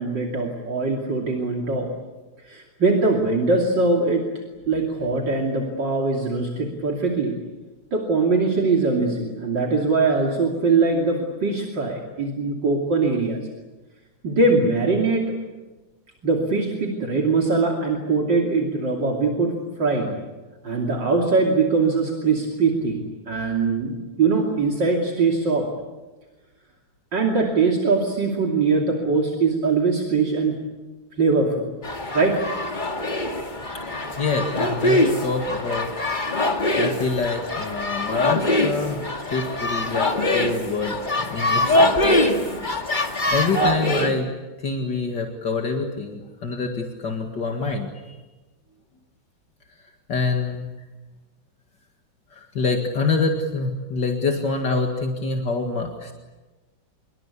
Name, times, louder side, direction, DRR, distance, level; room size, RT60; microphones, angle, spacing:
voice 1, 0.0-1.9 2.5-4.3 4.7-7.4 7.9-13.4 14.2-15.3 16.2-20.1 20.6-25.7 27.1-30.6 31.2-31.7 32.1-32.4, right 3 dB, 65° right, 1 dB, 3.5 m, -22 dB
sound 1, 31.8-44.1, left 1 dB, 25° left, 2.3 m, -23 dB
voice 2, 34.2-35.9 36.8-41.0 41.3-41.9 43.3-44.3 44.6-48.2 50.1-50.7 52.3-56.1, left 4 dB, 60° left, 3 dB, 2.7 m, -26 dB
26.5 x 23.5 x 8.5 m, 1.2 s
omnidirectional pair, 2.1 m